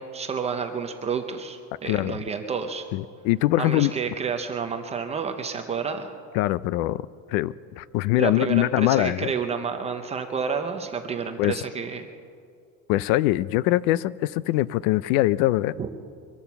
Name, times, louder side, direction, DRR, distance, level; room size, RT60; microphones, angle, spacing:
voice 1, 0.0-2.8 3.6-6.1 8.2-12.1 15.8-15.9, right 6 dB, 15° right, 6 dB, 0.4 m, -30 dB
voice 2, 1.9-2.2 2.9-3.9 6.3-7.0 7.3-9.3 11.4-11.6 12.9-15.7, left 16 dB, 70° left, 19 dB, 0.5 m, -23 dB
23.5 x 8.7 x 7.0 m, 2.3 s
cardioid pair, 175°, 45 cm